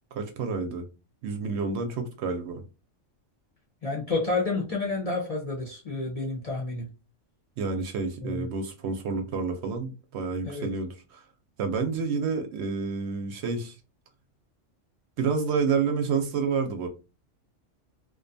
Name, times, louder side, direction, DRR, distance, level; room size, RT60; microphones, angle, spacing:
voice 1, 0.1-0.8 1.2-2.6 7.6-11.2 11.6-13.8 15.2-16.9, right 5 dB, 70° right, 0.8 m, -29 dB
voice 2, 3.8-6.9 8.2-8.5 10.4-10.7, left 3 dB, 45° left, 0.5 m, -30 dB
2.5 x 2.2 x 2.5 m
omnidirectional pair, 1.3 m